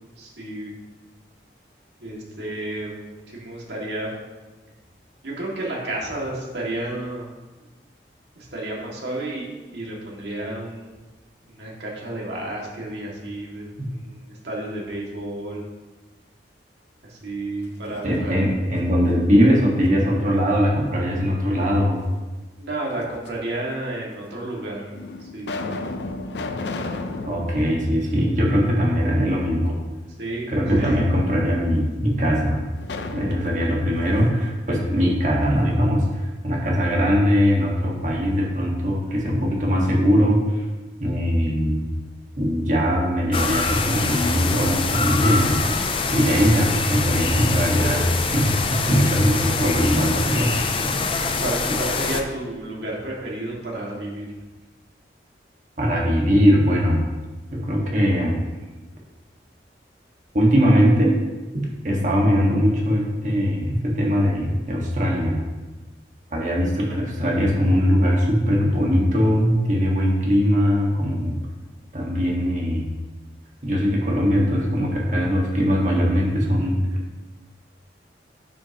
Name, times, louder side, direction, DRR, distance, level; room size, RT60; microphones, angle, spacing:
voice 1, 0.2-0.7 2.0-3.0 3.3-4.1 5.2-7.2 8.4-11.0 11.4-15.6 17.0-18.4 22.6-24.9 25.2-25.5 30.2-31.0 51.1-54.3 66.9-67.0, right 1 dB, 80° right, -3 dB, 2.1 m, -31 dB
sound 1, 17.6-18.6 19.1-20.3 21.6-22.4 23.3-23.4 24.2-24.3 24.9-29.0 29.4-29.5 32.8-35.6, left 2 dB, 80° left, 0.6 m, -34 dB
voice 2, 18.0-22.1 27.3-29.7 30.5-32.6 33.1-40.6 41.0-41.8 42.4-45.6 46.1-48.6 48.9-50.5 55.8-57.0 57.5-58.4 60.3-61.2 61.8-65.4 66.3-71.4 71.9-72.9 73.6-76.8, equal, 45° right, -2 dB, 1.6 m, -20 dB
sound 2, 43.3-52.2, left 4 dB, 30° left, 0.5 m, -24 dB
9.2 x 6.2 x 3.0 m, 1.2 s
head